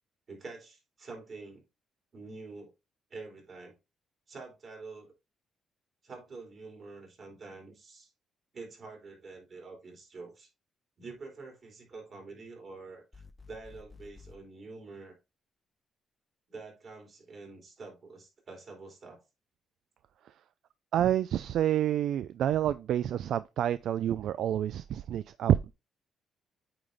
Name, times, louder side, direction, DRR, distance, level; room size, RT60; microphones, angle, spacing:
voice 1, 0.3-1.6 2.1-2.7 3.1-3.7 4.3-5.1 6.0-8.1 8.5-10.5 11.0-15.2 16.5-19.2, right 3 dB, 50° right, 3.8 m, -47 dB
sound 1, 13.1-14.4, left 4 dB, 20° left, 0.6 m, -52 dB
voice 2, 20.9-25.7, right 11 dB, 75° right, 0.3 m, -28 dB
8.6 x 4.0 x 3.3 m
cardioid pair, 90°, 0 cm